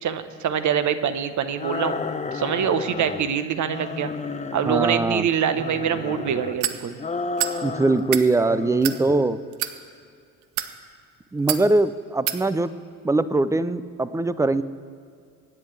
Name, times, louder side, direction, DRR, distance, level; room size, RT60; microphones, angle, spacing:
voice 1, 0.0-2.0 2.3-4.1 4.5-7.0, right 8 dB, 45° right, 10 dB, 1.2 m, -24 dB
sound 1, 1.6-3.3 3.7-5.1 5.5-6.6 7.0-8.2 8.4-9.2, left 4 dB, 15° left, 0.8 m, -32 dB
voice 2, 4.7-5.3 7.6-9.4 11.3-12.7 13.0-14.6, right 2 dB, 5° right, 15 dB, 0.5 m, -21 dB
sound 2, 6.6-6.8 7.4-7.6 8.0-8.3 8.8-9.0 9.5-9.7 10.4-10.7 11.5-11.6 12.3-12.4, right 13 dB, 65° right, 1.0 m, -26 dB
24.5 x 10.0 x 3.4 m, 2.3 s
hypercardioid pair, 65°, 43 cm